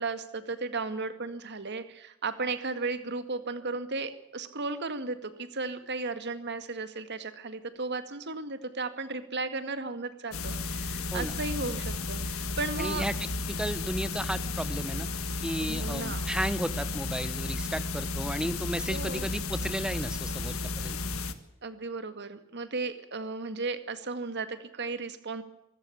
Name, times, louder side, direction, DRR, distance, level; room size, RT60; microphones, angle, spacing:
voice 1, 0.0-13.1 15.6-16.3 18.9-19.3 21.6-25.4, right 3 dB, 55° right, 10 dB, 2.0 m, -35 dB
sound 1, 10.3-21.3, left 3 dB, 75° left, 1.8 m, -33 dB
voice 2, 12.8-15.1 15.4-21.0, equal, 5° right, 14 dB, 1.1 m, -34 dB
25.0 x 13.5 x 8.6 m, 0.89 s
head